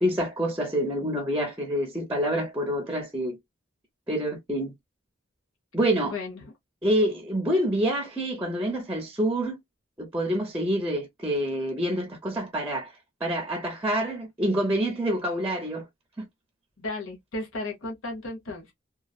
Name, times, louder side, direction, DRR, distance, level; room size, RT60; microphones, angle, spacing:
voice 1, 0.0-3.4 4.1-4.7 5.7-6.1 6.8-9.6 10.0-12.9 13.2-15.9 16.2-16.3, right 1 dB, 10° right, 0.5 m, -27 dB
voice 2, 6.0-6.5 16.8-18.7, left 2 dB, 85° left, 1.0 m, -35 dB
3.1 x 2.3 x 2.2 m
head